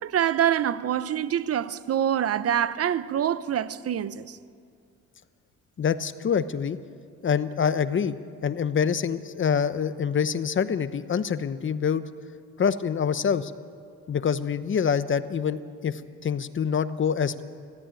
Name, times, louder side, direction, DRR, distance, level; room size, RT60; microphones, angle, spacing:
voice 1, 0.0-4.4, right 10 dB, 50° right, 0.8 m, -25 dB
voice 2, 5.8-6.8 7.2-8.2 8.4-12.0 12.6-13.5 14.1-17.4, left 7 dB, 40° left, 1.0 m, -26 dB
20.5 x 14.5 x 9.0 m
cardioid pair, 90°, 30 cm